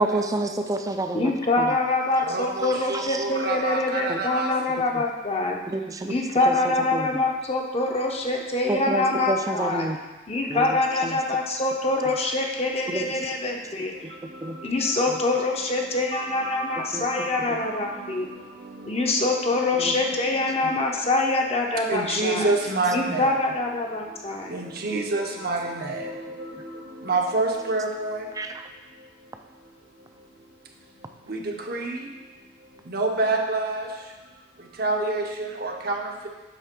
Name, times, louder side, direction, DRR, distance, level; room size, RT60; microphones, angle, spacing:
voice 1, 0.0-1.3 1.6-1.7 2.6-3.2 4.1-4.2 5.7-6.2 6.5-6.6 6.9-7.2 8.7-10.0 10.5-10.8 11.0-11.2 12.9-13.0 14.0-14.1 14.4-14.6 16.9-17.6 19.8-19.9 23.1-23.2 28.4-28.6, right 2 dB, 20° right, 6 dB, 0.4 m, -29 dB
voice 2, 1.1-5.6 6.0-9.9 10.3-13.9 14.6-18.3 18.9-22.5 22.9-24.6, left 2 dB, 30° left, 0 dB, 0.7 m, -25 dB
voice 3, 2.3-4.5 14.6-14.9 15.7-15.8 16.1-17.7 18.8-18.9 20.1-20.2 21.9-23.3 24.5-26.1 26.4-26.5 27.0-28.2 31.3-31.4 31.7-32.0 32.9-33.9 34.8-36.3, right 3 dB, 50° right, 1 dB, 0.8 m, -28 dB
8.0 x 3.3 x 5.9 m, 1.2 s
head